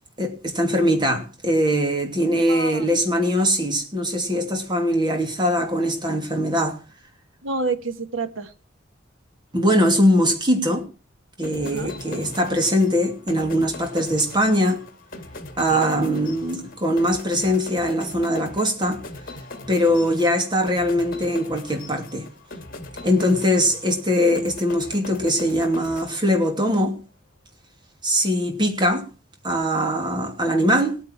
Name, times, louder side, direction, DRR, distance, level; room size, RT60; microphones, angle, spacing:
voice 1, 0.2-6.8 9.5-10.8 11.4-14.8 15.6-19.0 19.7-22.3 23.0-27.0 28.0-29.1 29.4-31.0, equal, 25° right, 2.8 m, -21 dB
voice 2, 2.5-2.9 7.4-8.5 11.6-11.9 15.7-15.8 20.0-20.1, right 3 dB, 85° right, 1.4 m, -29 dB
sound 1, 11.4-26.7, left 2 dB, 50° left, 2.5 m, -40 dB
18.0 x 9.1 x 4.6 m
head